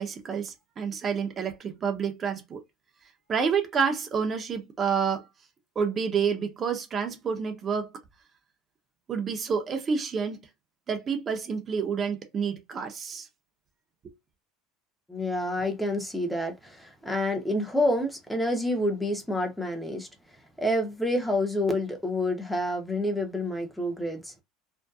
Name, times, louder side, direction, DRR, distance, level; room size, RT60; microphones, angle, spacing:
voice 1, 0.0-2.6 3.3-5.3 5.8-7.9 9.1-10.5 10.9-13.3, right 6 dB, 35° right, 0.7 m, -29 dB
voice 2, 15.1-20.1 20.6-24.3, left 1 dB, ahead, 0.7 m, -28 dB
2.6 x 2.1 x 2.3 m
supercardioid pair, 95°, 0 cm